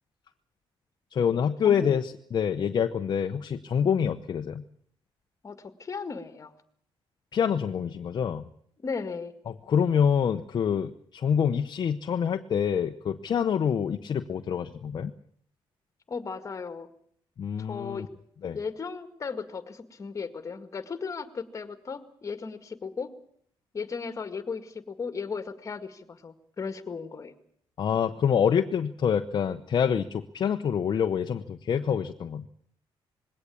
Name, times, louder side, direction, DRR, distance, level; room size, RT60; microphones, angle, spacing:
voice 1, 1.1-4.6 7.3-8.4 9.5-15.1 17.4-18.1 18.4-18.6 27.8-32.5, left 7 dB, 50° left, 6 dB, 1.0 m, -26 dB
voice 2, 1.6-2.0 5.4-6.5 8.8-9.3 16.1-16.9 17.6-18.1 18.5-23.1 23.7-27.3, left 5 dB, 35° left, 11 dB, 2.0 m, -36 dB
21.0 x 17.5 x 8.5 m, 0.64 s
cardioid pair, 130°, 9 cm